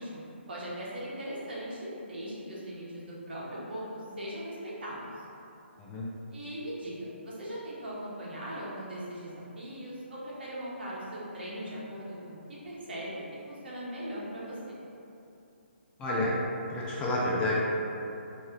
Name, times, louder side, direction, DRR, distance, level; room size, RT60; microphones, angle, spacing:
voice 1, 0.0-3.8 4.2-5.2 6.3-12.4 12.6-13.2 13.5-14.6, equal, 55° right, -7 dB, 1.2 m, -39 dB
voice 2, 16.0-16.3 16.7-17.6, left 1 dB, 15° left, -7 dB, 0.4 m, -29 dB
4.1 x 2.9 x 3.7 m, 2.8 s
figure-of-eight pair, 140°, 7 cm